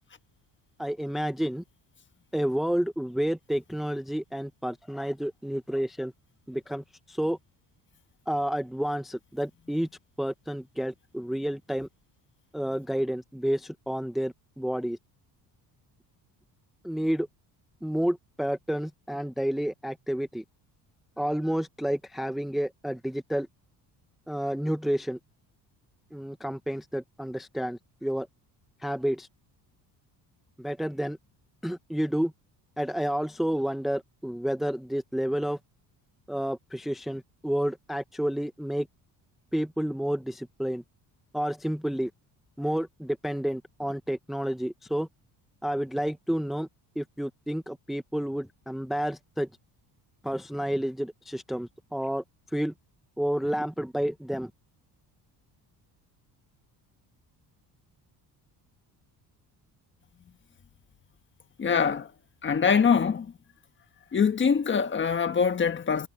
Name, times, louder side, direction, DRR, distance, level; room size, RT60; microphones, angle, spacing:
voice 1, 0.8-1.6 2.3-6.1 6.5-7.4 8.3-9.9 10.2-11.9 12.5-15.0 16.8-17.3 17.8-20.4 21.2-23.5 24.3-25.2 26.1-28.3 28.8-29.3 30.6-31.2 31.6-32.3 32.8-35.6 36.3-38.9 39.5-40.8 41.3-42.1 42.6-45.1 45.6-46.7 47.0-49.5 50.2-52.2 52.5-52.7 53.2-54.5, equal, ahead, 0.8 m, -30 dB
voice 2, 61.6-62.1 62.4-63.3 64.1-66.1, left 6 dB, 30° left, 1.4 m, -24 dB
cardioid pair, 135°, 40 cm